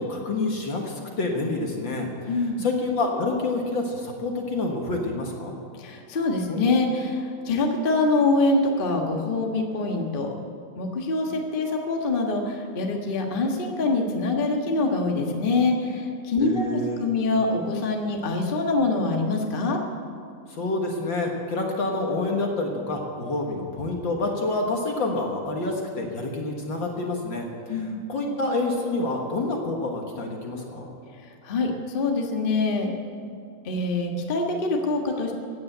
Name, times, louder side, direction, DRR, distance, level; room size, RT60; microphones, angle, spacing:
voice 1, 0.0-5.6 16.4-17.1 20.5-30.9, left 2 dB, 50° left, 1 dB, 1.5 m, -28 dB
voice 2, 2.3-2.6 5.8-10.3 10.8-19.8 27.7-28.0 31.4-32.9 33.6-35.3, left 3 dB, 65° left, 1 dB, 0.5 m, -25 dB
15.5 x 9.6 x 8.0 m, 2.4 s
omnidirectional pair, 3.9 m